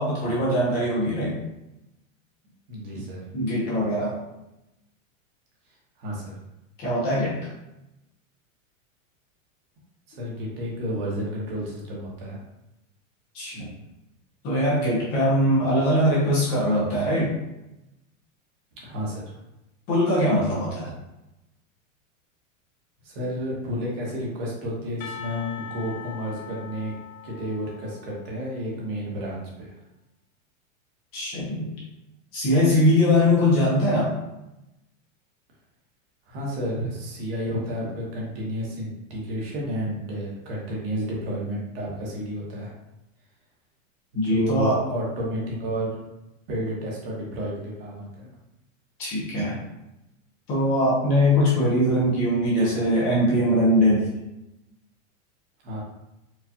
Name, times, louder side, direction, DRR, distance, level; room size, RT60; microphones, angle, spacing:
voice 1, 0.0-1.4 3.3-4.1 6.8-7.5 13.3-13.7 14.4-17.3 19.9-20.9 31.1-31.7 32.3-34.1 44.2-44.8 49.0-49.6 50.5-54.1, equal, 25° left, -6 dB, 0.8 m, -21 dB
voice 2, 2.7-3.2 6.0-6.3 10.1-12.4 18.7-19.4 23.0-26.9 27.2-29.8 36.3-42.7 44.1-46.0 46.5-48.3 55.6-55.8, equal, 45° right, -3 dB, 1.1 m, -31 dB
Percussion, 25.0-28.9, left 8 dB, 80° left, 0.8 m, -41 dB
4.7 x 2.4 x 2.8 m, 0.92 s
supercardioid pair, 170°, 41 cm